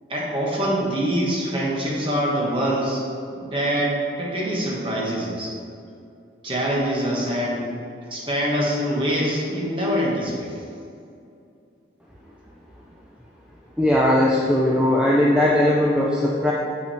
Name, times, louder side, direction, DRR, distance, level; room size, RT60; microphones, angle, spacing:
voice 1, 0.1-3.0 3.3-5.5 6.4-7.7 8.1-10.5, equal, 25° right, -4 dB, 1.5 m, -24 dB
voice 2, 13.8-16.5, left 1 dB, 5° right, -4 dB, 0.5 m, -19 dB
7.7 x 5.9 x 4.3 m, 2.5 s
head